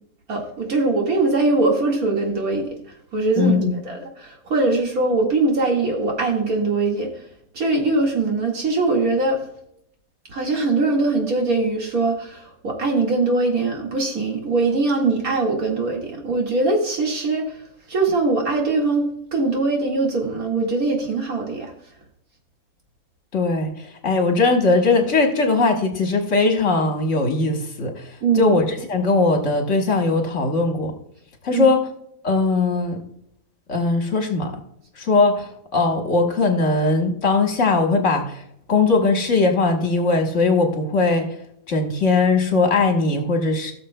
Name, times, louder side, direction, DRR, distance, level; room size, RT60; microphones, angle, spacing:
voice 1, 0.3-2.7 3.1-7.1 7.5-9.4 10.3-17.6 17.9-21.7 28.2-28.6 31.5-31.7, right 3 dB, 80° right, 0 dB, 2.4 m, -22 dB
voice 2, 3.4-3.7 23.3-30.9 31.4-31.8 32.2-33.0 33.7-34.5 35.0-38.4 38.7-41.3 41.7-43.7, left 3 dB, 60° left, 3 dB, 1.6 m, -20 dB
17.0 x 6.7 x 2.3 m, 0.73 s
omnidirectional pair, 1.5 m